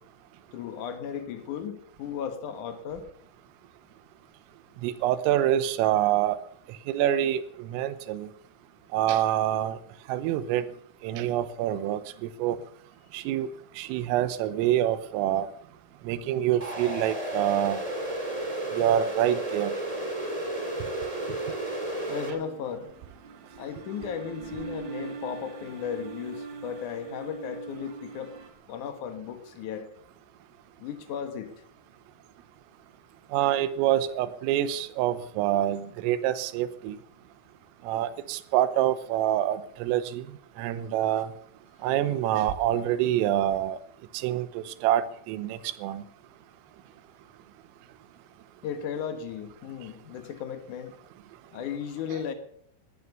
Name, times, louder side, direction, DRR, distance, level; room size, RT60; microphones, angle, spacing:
voice 1, 0.5-3.1 22.1-22.9 23.6-28.3 28.7-29.9 30.8-31.5 48.6-51.0 51.5-52.3, left 8 dB, 75° left, 7 dB, 1.9 m, -35 dB
voice 2, 4.8-6.4 6.9-8.3 8.9-9.8 10.1-10.7 11.0-12.6 13.1-13.5 13.8-15.5 16.1-17.8 18.8-19.7 33.3-37.0 37.9-40.3 40.6-41.3 41.8-43.8 44.1-46.0, right 12 dB, 90° right, 14 dB, 3.5 m, -26 dB
sound 1, 16.6-22.3, right 1 dB, 25° right, 0.7 m, -32 dB
sound 2, 22.2-28.5, right 5 dB, 55° right, 3.9 m, -42 dB
18.5 x 13.0 x 5.4 m, 0.66 s
omnidirectional pair, 5.8 m